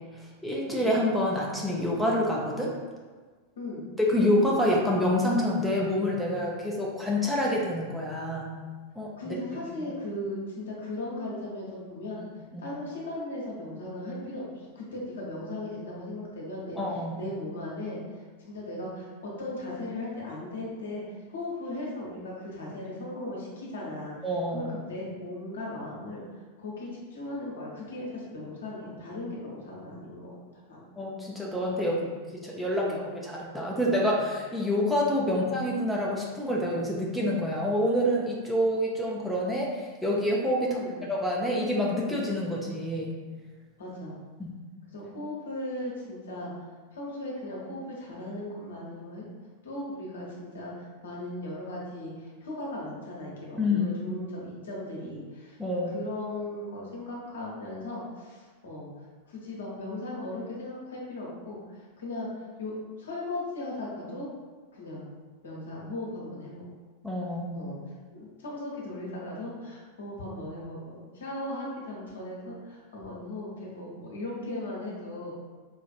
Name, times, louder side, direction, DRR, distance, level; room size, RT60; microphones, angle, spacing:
voice 1, 0.4-2.7 4.0-8.5 9.0-9.4 9.8-9.9 12.5-12.7 16.8-17.2 24.2-24.8 31.0-32.0 32.3-40.8 41.1-43.2 44.4-44.5 53.6-54.0 55.6-55.9 67.0-67.7, left 1 dB, ahead, -5 dB, 0.5 m, -27 dB
voice 2, 9.2-12.2 12.6-16.8 17.2-24.1 24.5-26.2 26.6-30.3 30.7-31.0 31.8-32.1 32.8-33.0 35.2-35.5 40.6-41.0 43.8-44.1 44.9-49.3 49.6-55.6 55.9-58.9 59.3-64.3 64.7-65.1 65.4-66.6 67.5-67.8 68.1-75.3, left 1 dB, 65° left, -4 dB, 0.9 m, -37 dB
4.1 x 2.4 x 2.4 m, 1.4 s
figure-of-eight pair, 90°, 0 cm